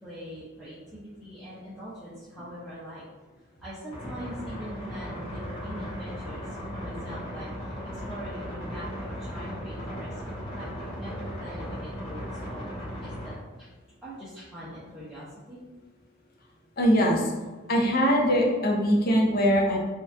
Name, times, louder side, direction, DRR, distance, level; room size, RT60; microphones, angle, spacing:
voice 1, 0.0-3.0 3.3-6.5 6.7-12.7 13.0-13.3 13.6-13.7 14.0-15.6, equal, ahead, -12 dB, 0.5 m, -43 dB
sound 1, 3.9-13.3, equal, 20° left, 1.2 m, -37 dB
voice 2, 16.8-17.3 17.7-19.8, equal, 45° left, -1 dB, 0.6 m, -22 dB
2.8 x 2.4 x 3.3 m, 1.3 s
head